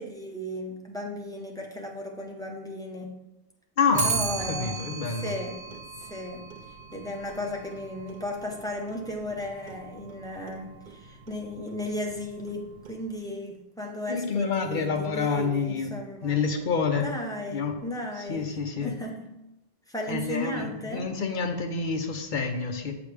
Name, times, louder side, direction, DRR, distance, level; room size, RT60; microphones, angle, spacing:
voice 1, 0.0-3.1 4.0-5.8 6.1-16.4 17.0-18.5 18.8-19.3 19.9-21.1, left 1 dB, 5° left, -1 dB, 0.6 m, -35 dB
voice 2, 3.8-4.1 4.5-5.3 14.1-15.9 16.2-17.1 17.5-17.8 18.3-18.9 20.1-22.9, left 5 dB, 50° left, 4 dB, 0.7 m, -28 dB
Clock, 3.9-13.3, right 4 dB, 50° right, 0.6 m, -37 dB
7.3 x 5.0 x 3.4 m, 0.91 s
omnidirectional pair, 1.2 m